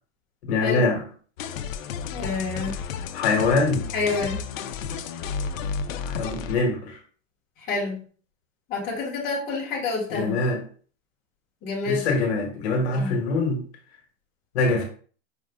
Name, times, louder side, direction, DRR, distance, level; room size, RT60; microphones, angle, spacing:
voice 1, 0.4-1.0 3.1-3.9 6.0-7.0 10.1-10.6 11.9-13.6 14.5-14.8, left 3 dB, 55° left, 2 dB, 1.3 m, -23 dB
sound 1, 1.4-6.6, left 6 dB, 80° left, 0.6 m, -32 dB
voice 2, 2.1-2.7 3.9-4.4 7.6-8.0 8.7-10.4 11.6-12.1 12.9-13.2, left 4 dB, 20° left, -5 dB, 1.1 m, -28 dB
5.0 x 2.4 x 3.4 m, 0.43 s
supercardioid pair, 170°, 38 cm